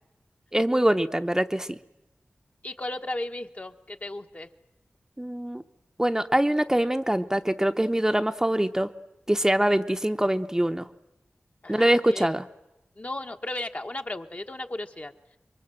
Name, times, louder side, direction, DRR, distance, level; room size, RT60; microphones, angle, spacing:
voice 1, 0.5-1.8 5.2-5.6 6.0-8.9 9.3-10.9 11.7-12.4, right 1 dB, 15° right, 7 dB, 0.8 m, -24 dB
voice 2, 2.6-4.5 11.6-12.3 13.0-15.4, left 1 dB, 35° left, 5 dB, 1.3 m, -35 dB
26.0 x 23.0 x 7.7 m, 0.95 s
wide cardioid pair, 70°, 4 cm